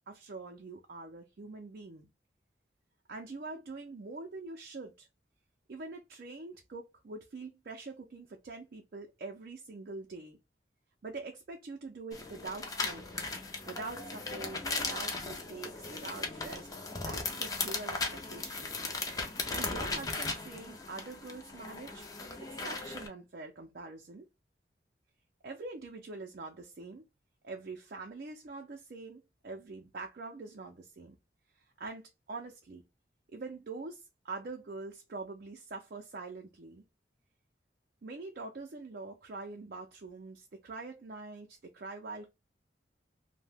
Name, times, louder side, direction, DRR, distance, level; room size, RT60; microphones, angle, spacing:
voice 1, 0.1-2.1 3.1-5.1 5.7-10.4 11.0-13.0 13.7-16.7 17.0-19.2 19.5-22.1 22.5-24.3 25.4-27.0 27.4-31.2 31.8-32.8 33.3-36.8 38.0-42.3, right 3 dB, 55° right, 0.4 m, -44 dB
sound 1, 12.1-23.1, left 3 dB, 20° left, 0.5 m, -37 dB
2.7 x 2.1 x 3.3 m
head